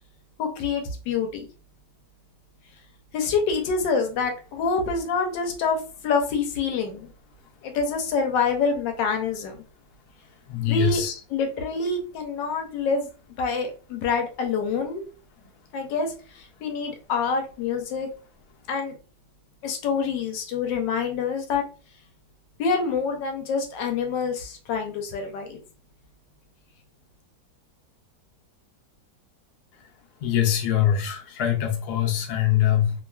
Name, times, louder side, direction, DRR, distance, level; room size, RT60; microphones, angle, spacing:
voice 1, 0.4-1.5 3.1-7.1 7.6-9.6 10.7-11.0 11.3-13.1 13.4-15.1 15.7-18.1 18.7-18.9 19.6-21.6 22.6-25.6, left 5 dB, 90° left, 1.3 m, -26 dB
voice 2, 10.5-11.1 30.2-32.9, left 10 dB, 70° left, 1.1 m, -23 dB
3.0 x 2.3 x 2.2 m
omnidirectional pair, 1.9 m